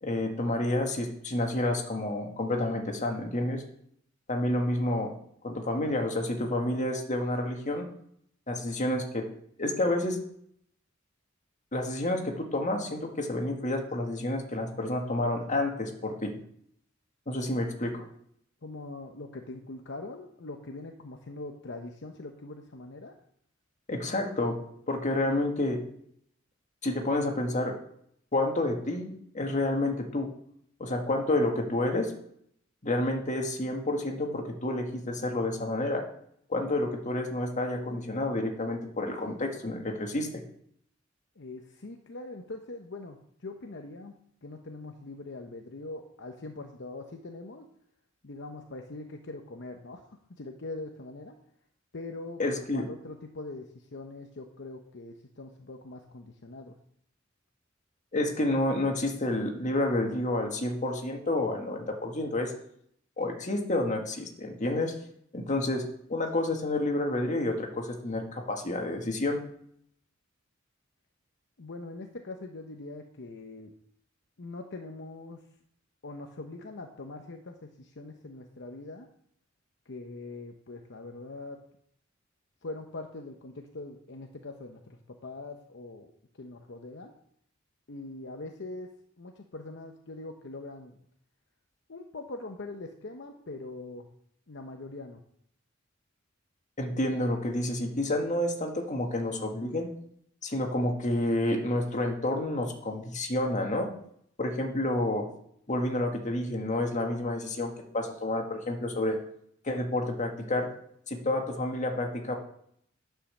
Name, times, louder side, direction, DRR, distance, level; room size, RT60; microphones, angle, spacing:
voice 1, 0.0-3.6 4.3-5.1 5.4-7.8 8.5-9.3 9.6-10.2 11.7-16.3 17.3-18.1 23.9-24.6 24.9-25.8 26.8-27.8 28.3-29.1 29.3-30.3 30.8-32.1 32.8-36.0 36.5-40.4 52.4-52.9 58.1-62.5 63.2-64.9 65.3-69.4 96.8-99.9 100.4-103.9 104.4-105.3 105.7-109.2 109.6-110.7 111.1-112.3, left 1 dB, 40° left, 3 dB, 1.7 m, -29 dB
voice 2, 18.6-23.1 41.4-44.1 44.4-47.7 48.2-51.4 51.9-56.8 71.6-73.7 74.4-75.4 76.0-79.1 79.9-81.6 82.6-87.1 87.9-88.9 89.2-91.0 91.9-94.1 94.5-95.2, left 2 dB, 65° left, 4 dB, 0.8 m, -42 dB
10.0 x 5.6 x 6.6 m, 0.69 s
head